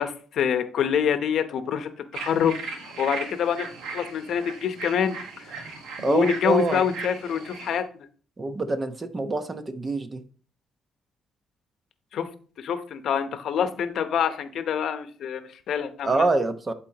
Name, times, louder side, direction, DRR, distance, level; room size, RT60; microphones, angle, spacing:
voice 1, 0.0-5.7 6.0-8.1 12.1-12.3 12.6-16.3, left 8 dB, 70° left, 0.8 m, -26 dB
sound 1, 2.1-7.8, right 4 dB, 85° right, 1.2 m, -38 dB
voice 2, 6.0-6.8 8.4-10.2 16.0-16.7, right 3 dB, 30° right, 0.9 m, -25 dB
11.5 x 4.2 x 2.9 m
cardioid pair, 90°, 0 cm